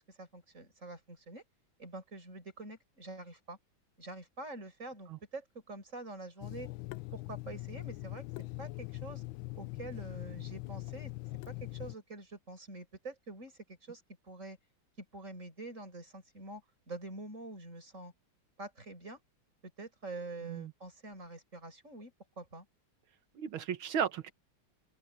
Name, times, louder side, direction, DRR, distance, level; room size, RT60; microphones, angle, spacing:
voice 1, 0.0-1.4 1.8-3.6 4.0-6.7 7.1-8.2 8.6-9.2 9.6-11.1 11.5-14.6 15.0-16.6 16.9-18.1 18.6-19.2 19.8-22.7, right 2 dB, 35° right, 6.4 m, -46 dB
Water tap faucet / Sink (filling or washing), 6.4-12.0, left 21 dB, 85° left, 1.4 m, -42 dB
voice 2, 23.4-24.3, right 8 dB, 90° right, 2.1 m, -35 dB
open air
omnidirectional pair, 2.2 m